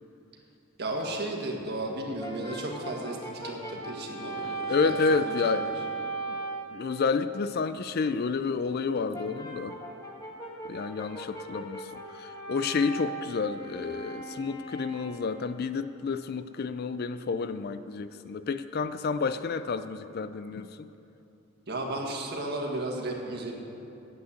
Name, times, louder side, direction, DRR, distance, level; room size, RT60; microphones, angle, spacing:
voice 1, 0.8-5.7 21.7-23.5, right 2 dB, 50° right, 0 dB, 1.7 m, -34 dB
Brass instrument, 2.2-6.8 9.1-15.5, right 3 dB, 15° left, 1.4 m, -38 dB
voice 2, 4.7-5.7 6.2-6.4 6.7-9.8 10.7-20.9, left 5 dB, 45° left, 12 dB, 0.4 m, -30 dB
10.0 x 8.2 x 8.3 m, 2.9 s
head